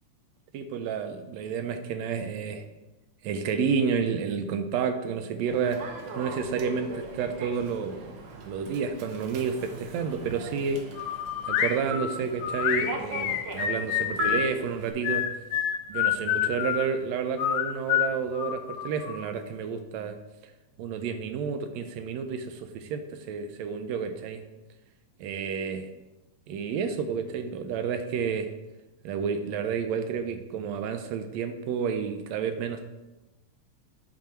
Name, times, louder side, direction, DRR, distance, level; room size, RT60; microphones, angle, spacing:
voice 1, 0.5-2.6 3.2-5.9 6.2-8.1 8.5-10.8 11.5-15.3 15.9-20.2 20.8-24.4 25.2-25.9 26.5-28.5 29.0-32.9, right 6 dB, 85° right, 8 dB, 1.6 m, -30 dB
Human voice / Subway metro underground, 5.5-14.9, right 1 dB, 65° right, 1.7 m, -39 dB
sound 1, 11.0-11.8 12.4-14.5 15.0-16.9 17.4-19.2, left 11 dB, 85° left, 2.1 m, -27 dB
8.5 x 6.1 x 4.4 m, 1.1 s
omnidirectional pair, 3.6 m